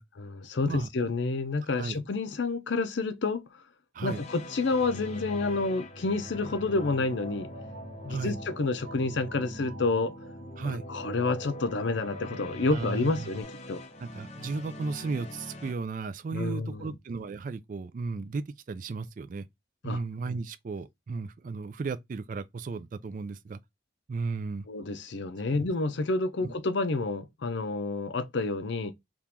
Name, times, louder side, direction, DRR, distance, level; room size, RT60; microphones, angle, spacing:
voice 1, 0.2-3.4 4.0-7.5 8.0-10.1 10.6-13.8 16.3-17.0 19.8-20.0 24.7-28.9, left 3 dB, 75° left, 0.6 m, -29 dB
sound 1, 4.0-15.7, left 1 dB, 35° left, 0.7 m, -44 dB
sound 2, 4.7-13.4, right 1 dB, 70° right, 0.7 m, -45 dB
voice 2, 12.7-13.3 14.0-19.5 19.8-23.6 24.1-24.7 26.4-26.5, right 4 dB, 45° right, 0.3 m, -35 dB
3.6 x 2.4 x 2.8 m
head